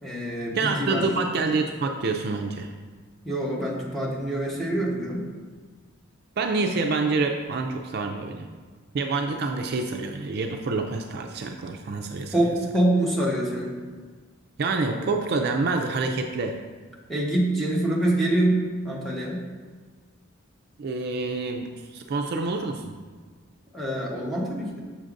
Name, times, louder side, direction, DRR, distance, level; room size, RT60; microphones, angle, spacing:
voice 1, 0.0-1.0 3.2-5.3 12.3-13.7 17.1-19.4 23.7-24.8, right 1 dB, ahead, -4 dB, 1.0 m, -25 dB
voice 2, 0.5-2.7 6.4-8.5 8.9-12.6 14.6-16.6 20.8-22.9, right 3 dB, 50° right, 3 dB, 0.4 m, -27 dB
6.8 x 6.4 x 2.5 m, 1.5 s
head